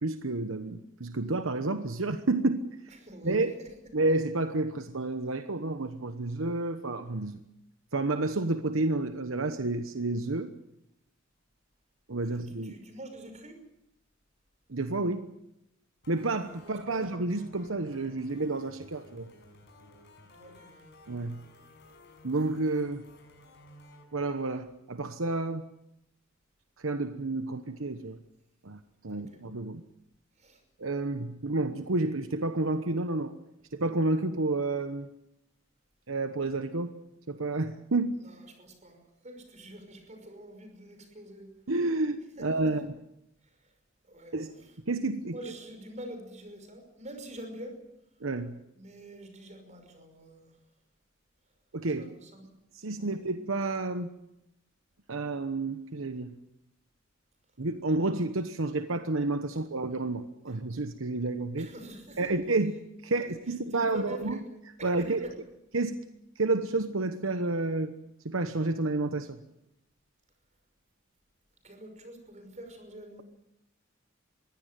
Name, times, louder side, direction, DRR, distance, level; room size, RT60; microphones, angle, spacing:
voice 1, 0.0-2.9 3.2-3.5 3.9-7.4 7.9-10.5 12.1-12.8 14.7-15.3 16.1-19.3 21.1-21.4 22.2-23.0 24.1-25.7 26.8-28.2 28.6-29.8 30.8-33.3 33.7-35.1 36.1-36.9 37.3-38.2 41.7-42.9 44.3-44.5 44.9-45.4 48.2-48.6 51.7-52.1 52.7-54.1 55.1-56.4 57.6-61.7 62.2-62.7 63.0-64.4 64.8-65.2 65.7-66.0 66.4-67.9 68.2-69.4, right 2 dB, 80° right, 9 dB, 1.1 m, -30 dB
voice 2, 3.0-3.7 12.3-13.6 16.6-17.0 20.3-20.7 29.1-29.4 30.4-30.6 38.2-41.6 42.4-42.8 44.0-44.5 45.3-47.8 48.8-50.6 52.0-52.5 53.0-53.1 61.6-62.3 63.7-64.4 64.8-65.3 71.6-73.2, right 1 dB, 35° right, 6 dB, 5.7 m, -45 dB
sound 1, 16.0-24.0, left 1 dB, 60° left, 6.3 m, -55 dB
22.0 x 16.5 x 9.3 m, 0.85 s
head